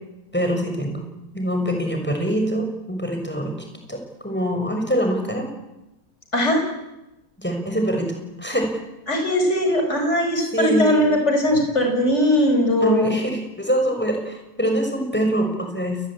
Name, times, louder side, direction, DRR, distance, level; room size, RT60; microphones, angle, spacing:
voice 1, 0.3-1.0 1.3-3.5 3.9-5.5 7.4-8.7 10.5-11.2 12.8-16.0, equal, 5° left, 3 dB, 6.4 m, -24 dB
voice 2, 6.3-6.6 9.1-13.1, left 1 dB, 35° left, 4 dB, 5.6 m, -19 dB
28.5 x 21.0 x 8.9 m, 0.93 s
omnidirectional pair, 2.0 m